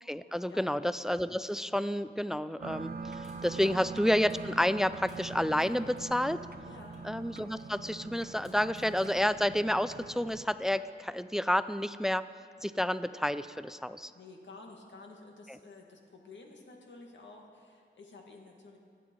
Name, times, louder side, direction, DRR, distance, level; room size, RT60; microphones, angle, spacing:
voice 1, 0.0-6.4 7.0-12.2 12.6-14.1 15.5-15.6, equal, ahead, 14 dB, 0.3 m, -30 dB
sound 1, 2.6-10.4, right 4 dB, 55° right, 0.9 m, -43 dB
Crushing, 3.2-5.3 5.6-7.8 8.4-9.3 9.8-9.9, left 1 dB, 35° left, 4.5 m, -61 dB
voice 2, 6.6-7.0 14.1-18.8, left 3 dB, 75° left, 1 dB, 2.1 m, -51 dB
24.5 x 9.3 x 4.7 m, 2.3 s
wide cardioid pair, 125°, 19 cm